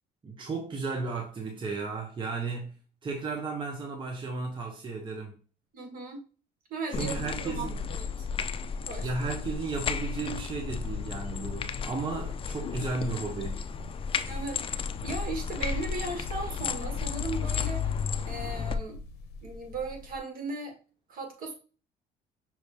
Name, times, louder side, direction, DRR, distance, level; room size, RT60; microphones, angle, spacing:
voice 1, 0.2-2.8 3.0-5.3 6.9-7.8 9.0-13.7, right 4 dB, 30° right, 0.9 m, -34 dB
voice 2, 5.7-6.2 6.7-8.1 8.9-9.1 14.3-18.0 18.3-19.0 19.4-20.7 21.1-21.5, right 3 dB, 55° right, 1.5 m, -37 dB
sound 1, 6.9-18.8, left 6 dB, 30° left, 0.4 m, -33 dB
sound 2, 14.8-20.2, left 3 dB, 75° left, 0.7 m, -44 dB
5.8 x 2.5 x 3.4 m
cardioid pair, 110°, 17 cm